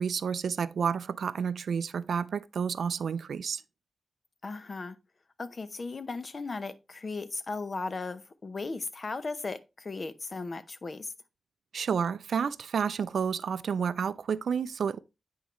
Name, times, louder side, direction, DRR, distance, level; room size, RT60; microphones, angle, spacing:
voice 1, 0.0-3.6 11.7-15.0, right 6 dB, 85° right, 0.3 m, -30 dB
voice 2, 4.4-5.0 5.4-11.1, left 3 dB, 45° left, 0.7 m, -36 dB
9.0 x 4.7 x 3.0 m
wide cardioid pair, 85°, 0 cm